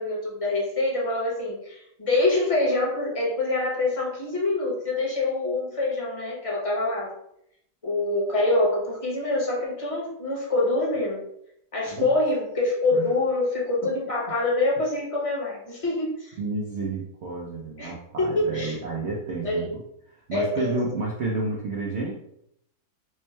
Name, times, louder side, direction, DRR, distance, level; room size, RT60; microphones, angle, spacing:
voice 1, 0.0-7.1 7.8-11.2 11.7-16.3 17.8-17.9 18.2-18.8 19.4-19.7 20.3-20.7, left 2 dB, 25° left, -4 dB, 0.9 m, -25 dB
voice 2, 16.4-19.8 20.1-22.1, right 3 dB, 70° right, -3 dB, 0.6 m, -31 dB
3.5 x 2.2 x 4.3 m, 0.73 s
omnidirectional pair, 1.8 m